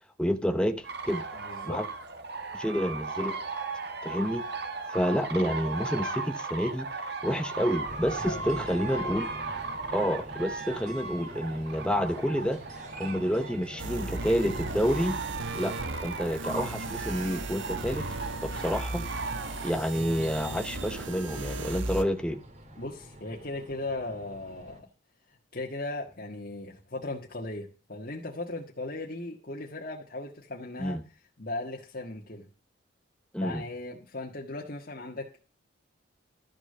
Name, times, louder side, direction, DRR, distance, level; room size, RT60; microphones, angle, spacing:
voice 1, 0.2-1.2 1.6-1.9 2.5-3.3 4.0-4.4 4.9-6.9 7.2-9.3 9.9-12.6 13.0-15.2 15.5-15.7 16.0-18.0 18.4-19.0 19.6-22.4 30.8-31.0 33.3-33.6, equal, 5° left, 7 dB, 0.9 m, -29 dB
sound 1, 0.8-19.7, right 3 dB, 55° right, 1.7 m, -37 dB
voice 2, 1.3-1.8 8.2-8.6 9.0-9.2 22.8-24.9 25.5-31.0 31.4-32.5 33.4-35.4, left 2 dB, 45° left, -2 dB, 1.7 m, -37 dB
sound 2, 7.8-24.8, equal, 35° right, 2.4 m, -47 dB
sound 3, 13.8-22.0, right 2 dB, 75° right, 1.2 m, -36 dB
13.0 x 6.7 x 6.7 m, 0.36 s
head